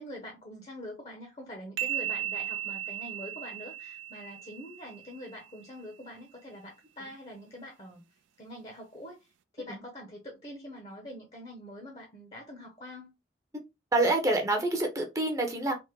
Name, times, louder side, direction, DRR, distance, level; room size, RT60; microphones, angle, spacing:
voice 1, 0.0-8.0 8.4-9.3 9.5-13.1, equal, 35° left, 0.6 m, -44 dB
sound 1, 1.8-5.3, right 11 dB, 90° right, 0.3 m, -36 dB
voice 2, 13.9-15.7, right 2 dB, 15° right, 0.6 m, -27 dB
3.4 x 2.1 x 2.9 m
head